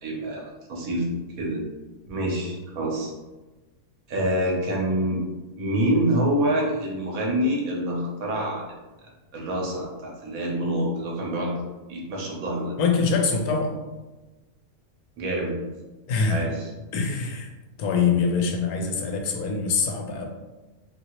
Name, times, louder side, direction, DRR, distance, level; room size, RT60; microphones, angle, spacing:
voice 1, 0.0-1.1 1.4-1.6 2.1-3.1 4.1-5.2 5.6-8.6 9.3-11.5 11.9-12.8 15.2-15.5 16.3-16.7, right 1 dB, 70° right, -2 dB, 1.1 m, -26 dB
voice 2, 12.8-13.7 16.1-16.4 16.9-17.5 17.8-20.3, left 5 dB, 85° left, 3 dB, 1.1 m, -24 dB
2.8 x 2.8 x 2.9 m, 1.2 s
omnidirectional pair, 1.5 m